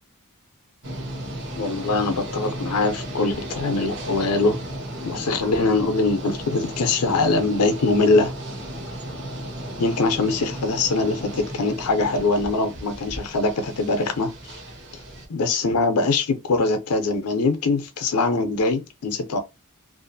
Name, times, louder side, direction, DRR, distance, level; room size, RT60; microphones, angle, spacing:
sound 1, 0.8-15.3, right 1 dB, 55° right, 0.9 m, -35 dB
voice 1, 1.6-4.6 5.0-8.3 9.8-14.5 15.3-19.4, left 3 dB, 85° left, 0.5 m, -22 dB
2.5 x 2.4 x 2.6 m
head